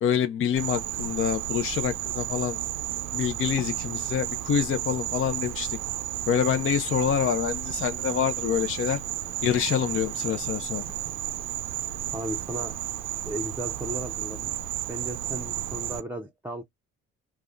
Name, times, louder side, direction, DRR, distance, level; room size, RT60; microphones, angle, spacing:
voice 1, 0.0-2.6 3.1-5.8 6.3-9.0 9.4-10.8, left 8 dB, 45° left, 0.4 m, -26 dB
Insect, 0.6-16.0, right 12 dB, 85° right, 0.6 m, -32 dB
voice 2, 12.1-12.7 13.3-14.5 14.9-16.6, right 1 dB, 5° right, 0.5 m, -35 dB
3.4 x 2.1 x 2.4 m
cardioid pair, 90°, 30 cm